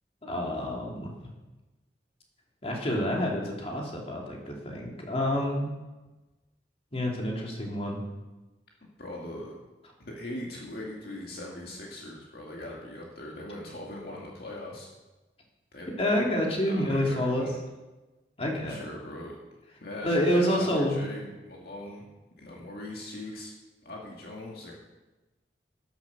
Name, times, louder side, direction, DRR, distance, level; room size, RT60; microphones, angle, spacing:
voice 1, 0.2-1.1 2.6-5.7 6.9-8.0 16.0-17.5 18.4-18.8 20.0-21.0, equal, 35° left, -1 dB, 2.9 m, -28 dB
voice 2, 9.0-9.6 10.0-14.9 15.7-15.9 16.7-17.5 18.7-19.4 19.8-22.1 22.4-23.5 23.8-24.7, left 1 dB, 60° left, -2 dB, 2.2 m, -40 dB
11.5 x 10.5 x 6.9 m, 1.1 s
head